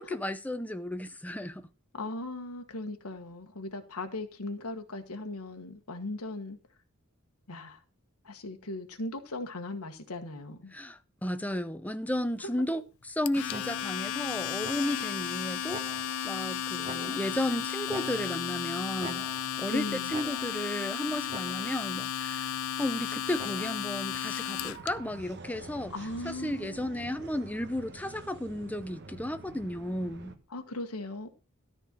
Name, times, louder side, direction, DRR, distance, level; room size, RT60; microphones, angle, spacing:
voice 1, 0.0-1.7 10.7-15.8 16.2-19.3 19.6-25.9 26.2-30.3, left 1 dB, 5° left, 0.7 m, -34 dB
voice 2, 1.9-6.6 7.5-7.8 8.2-10.7 19.7-20.1 25.9-27.1 30.5-31.3, left 2 dB, 90° left, 1.4 m, -38 dB
Domestic sounds home sounds, 13.3-24.9, left 9 dB, 70° left, 0.6 m, -34 dB
sound 1, 13.5-14.1 14.6-15.2 15.7-16.4 16.8-17.5 17.9-18.6 19.0-19.7 20.1-20.8 21.3-21.9 23.4-24.0, right 2 dB, 25° right, 1.2 m, -45 dB
sound 2, 24.6-30.4, right 2 dB, 50° right, 1.3 m, -47 dB
13.0 x 4.4 x 7.4 m
head